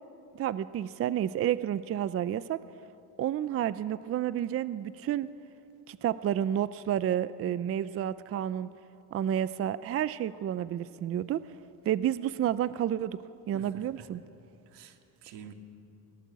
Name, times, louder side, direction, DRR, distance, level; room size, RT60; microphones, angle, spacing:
voice 1, 0.3-2.6 3.2-5.3 5.9-8.7 9.1-11.4 11.8-13.2 13.5-14.2, right 10 dB, 35° right, 16 dB, 0.4 m, -30 dB
voice 2, 13.5-14.1 14.7-15.5, right 8 dB, 90° right, 6 dB, 2.0 m, -49 dB
21.0 x 18.5 x 8.1 m, 2.9 s
cardioid pair, 145°, 41 cm